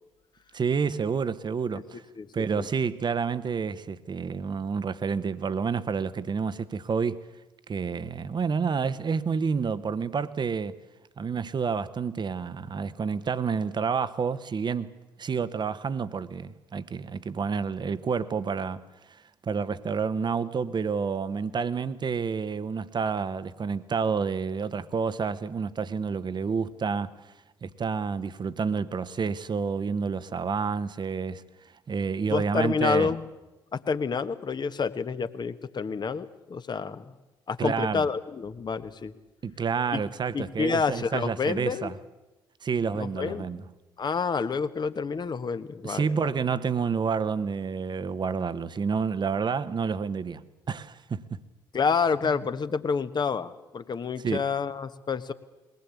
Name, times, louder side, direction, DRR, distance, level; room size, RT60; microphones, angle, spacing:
voice 1, 0.5-2.0 2.3-7.2 7.7-10.8 11.2-18.8 19.1-27.1 27.6-31.4 31.9-33.1 37.6-38.1 39.4-41.9 42.6-43.6 45.8-51.4 54.2-54.4, right 5 dB, 40° right, 1.2 m, -29 dB
voice 2, 32.3-33.3 33.7-37.1 37.5-39.1 39.9-40.0 40.3-41.9 42.9-43.5 44.0-46.3 51.7-55.3, left 5 dB, 40° left, 1.4 m, -28 dB
21.5 x 19.0 x 8.4 m
hypercardioid pair, 45°, 11 cm